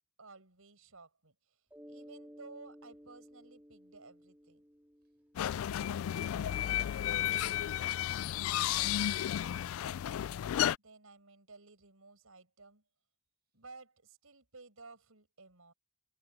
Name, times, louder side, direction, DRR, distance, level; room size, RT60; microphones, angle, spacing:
voice 1, 0.2-4.6 10.8-12.8 13.5-15.7, right 3 dB, 80° right, 5.2 m, -55 dB
Mallet percussion, 1.7-6.1, equal, 5° right, 2.2 m, -56 dB
sound 1, 5.4-10.8, left 11 dB, 75° left, 0.3 m, -33 dB
voice 2, 5.6-9.8, right 3 dB, 50° right, 6.3 m, -66 dB
head